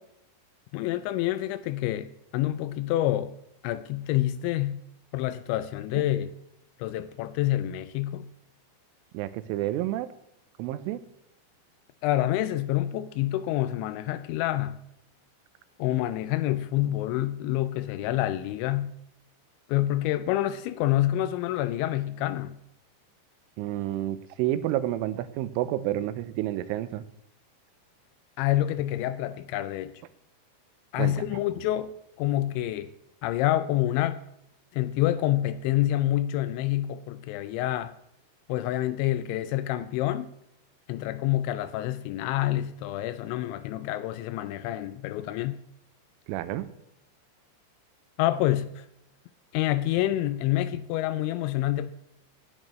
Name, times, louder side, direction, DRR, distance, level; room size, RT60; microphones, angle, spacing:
voice 1, 0.7-3.3 3.6-4.8 5.1-6.3 6.8-8.3 12.0-14.8 15.8-18.9 19.7-22.6 28.4-30.0 30.9-32.9 33.2-34.2 34.7-37.9 38.5-40.3 40.9-45.6 48.2-48.9 49.5-51.9, left 14 dB, 85° left, 2.7 m, -27 dB
voice 2, 9.1-10.1 10.6-11.0 23.6-27.0 31.0-31.1 46.3-46.7, right 14 dB, 90° right, 3.2 m, -29 dB
19.0 x 8.8 x 3.1 m
omnidirectional pair, 5.5 m